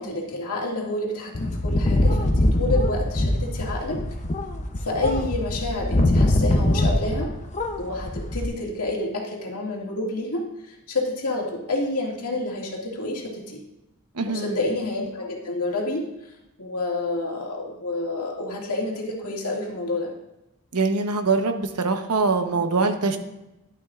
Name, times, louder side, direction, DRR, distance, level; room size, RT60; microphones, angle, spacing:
voice 1, 0.0-4.0 4.8-7.3 7.8-13.6 14.2-16.1 16.6-20.1, left 2 dB, 80° left, -2 dB, 2.1 m, -29 dB
sound 1, 1.3-7.3 7.5-8.4, left 1 dB, 30° left, 0.7 m, -23 dB
voice 2, 14.1-14.6 20.7-23.2, right 3 dB, 90° right, 6 dB, 1.0 m, -23 dB
11.0 x 11.0 x 2.5 m, 0.94 s
head